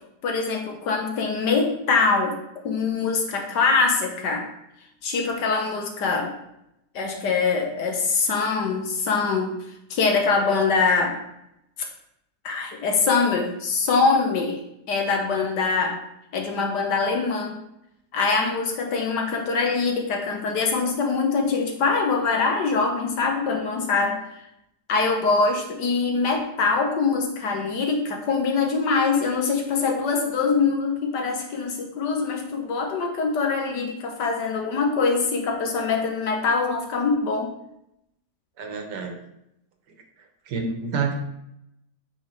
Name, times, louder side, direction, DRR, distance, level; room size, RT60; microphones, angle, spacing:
voice 1, 0.2-2.4 2.6-4.5 5.0-6.3 6.9-9.5 9.9-11.2 12.4-14.6 14.9-16.0 16.3-17.6 18.1-24.4 24.9-37.5, left 4 dB, 85° left, 2 dB, 1.7 m, -23 dB
voice 2, 38.6-39.2 40.5-41.2, right 5 dB, 90° right, 4 dB, 1.7 m, -28 dB
9.0 x 5.4 x 3.1 m, 0.82 s
omnidirectional pair, 1.8 m